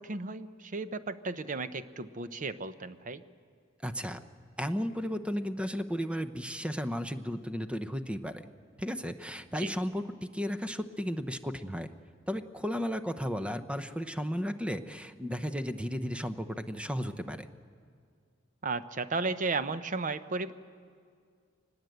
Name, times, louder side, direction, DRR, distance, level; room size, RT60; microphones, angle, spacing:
voice 1, 0.0-3.2 9.6-9.7 18.6-20.5, right 3 dB, 40° right, 12 dB, 0.7 m, -34 dB
voice 2, 3.8-4.2 4.6-8.4 8.8-10.0 10.3-11.9 12.3-17.5, equal, 5° right, 9 dB, 0.8 m, -34 dB
24.0 x 19.5 x 8.0 m, 2.1 s
head